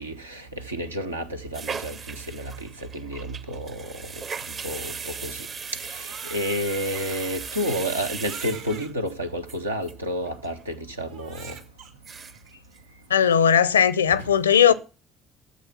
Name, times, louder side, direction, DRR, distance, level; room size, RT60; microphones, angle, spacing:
voice 1, 0.0-4.1 4.6-5.5 5.7-11.6 14.1-14.3 14.7-14.8, equal, 90° right, 1.0 m, -31 dB
sound 1, 1.5-9.1 9.5-9.6 9.8-9.9 10.2-10.6 10.9-11.0 11.6-11.7 11.9-12.5 12.8-12.9 13.2-13.7 14.0-14.2, right 5 dB, 40° right, 0.9 m, -37 dB
Crying sobbing, 5.8-8.9 9.7-9.8 11.1-11.9, right 7 dB, 70° right, 1.8 m, -43 dB
voice 2, 13.1-14.7, left 8 dB, 85° left, 0.6 m, -18 dB
13.5 x 8.1 x 5.9 m
figure-of-eight pair, 55°, 0 cm